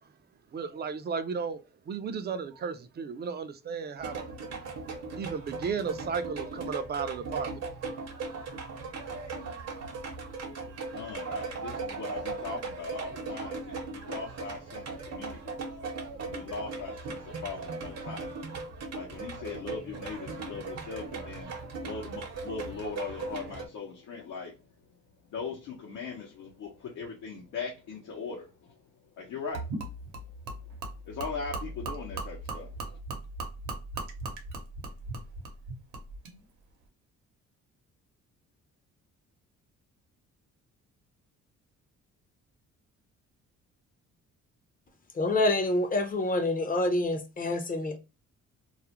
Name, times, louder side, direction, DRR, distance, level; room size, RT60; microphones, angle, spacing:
voice 1, 0.5-8.0, right 6 dB, 35° right, 0.4 m, -35 dB
sound 1, 4.0-23.7, right 4 dB, 55° right, 0.8 m, -38 dB
voice 2, 10.9-15.6 16.2-18.3 18.9-24.6 25.3-28.8 29.2-29.7 31.1-33.0, left 5 dB, 80° left, 0.7 m, -40 dB
Gurgling / Liquid, 29.5-36.4, right 2 dB, 90° right, 0.8 m, -38 dB
voice 3, 45.1-48.0, left 2 dB, 30° left, 0.6 m, -27 dB
2.4 x 2.0 x 2.8 m
cardioid pair, 90°, 30 cm